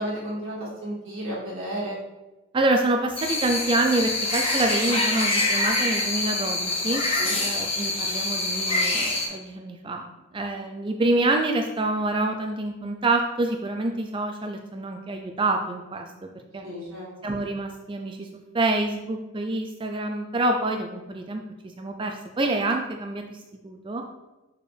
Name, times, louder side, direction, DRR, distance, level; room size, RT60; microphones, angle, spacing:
voice 1, 0.0-2.0 7.2-7.4 16.6-17.1, equal, 60° right, -5 dB, 2.0 m, -32 dB
voice 2, 2.5-7.0 7.4-10.1 10.3-16.7 17.2-18.3 18.5-21.4 21.8-24.0, right 2 dB, 20° right, 3 dB, 0.4 m, -27 dB
sound 1, 3.2-9.3, left 2 dB, 25° left, 1.1 m, -25 dB
6.3 x 4.8 x 3.3 m, 1.0 s
head